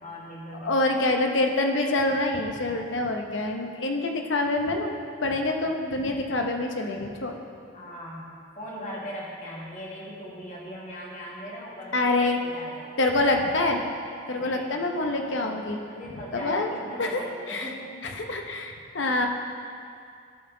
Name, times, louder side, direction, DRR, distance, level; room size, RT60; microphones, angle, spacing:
voice 1, 0.0-0.7 7.7-8.3 8.5-12.9 14.3-18.1, equal, 40° left, -5 dB, 1.5 m, -40 dB
voice 2, 0.6-4.9 5.2-7.4 11.9-12.4 13.0-13.8 14.3-15.8 16.3-16.7 17.0-17.7 18.0-19.3, left 2 dB, 70° left, 3 dB, 0.8 m, -26 dB
12.5 x 5.7 x 3.9 m, 2.3 s
head